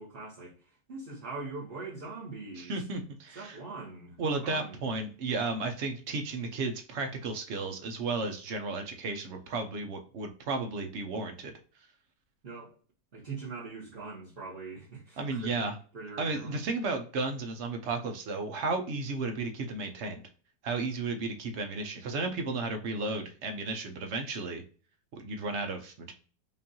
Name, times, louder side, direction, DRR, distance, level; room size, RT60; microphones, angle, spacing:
voice 1, 0.0-2.8 3.3-4.8 12.4-12.7 13.1-16.6, right 3 dB, 35° right, 1.2 m, -42 dB
voice 2, 2.6-3.6 4.2-11.5 15.2-15.7 16.2-20.2 20.6-24.6 25.1-26.1, right 3 dB, 65° right, 0.7 m, -33 dB
5.2 x 2.5 x 2.7 m
omnidirectional pair, 1.9 m